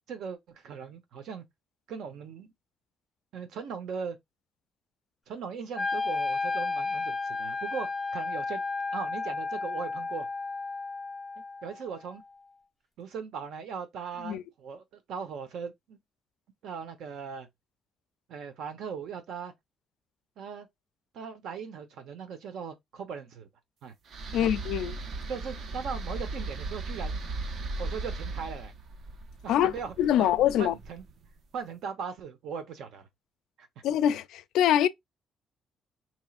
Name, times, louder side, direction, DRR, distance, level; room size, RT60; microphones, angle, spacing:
voice 1, 0.1-1.4 1.9-2.5 3.3-4.2 5.3-8.6 8.9-10.3 11.6-12.2 13.0-16.0 16.6-17.5 18.3-19.5 20.4-20.7 21.1-23.5 23.8-23.9 24.4-24.5 25.3-27.2 27.8-28.7 29.4-31.0 31.5-33.1, right 6 dB, 65° right, 0.9 m, -39 dB
Wind instrument woodwind instrument, 5.8-11.8, left 3 dB, ahead, 0.9 m, -32 dB
sound 1, 24.1-31.3, right 3 dB, 45° right, 0.6 m, -37 dB
voice 2, 24.3-24.9 29.5-29.7 30.0-30.7 33.8-34.9, left 11 dB, 90° left, 0.4 m, -24 dB
4.3 x 3.1 x 2.4 m
cardioid pair, 170°, 0 cm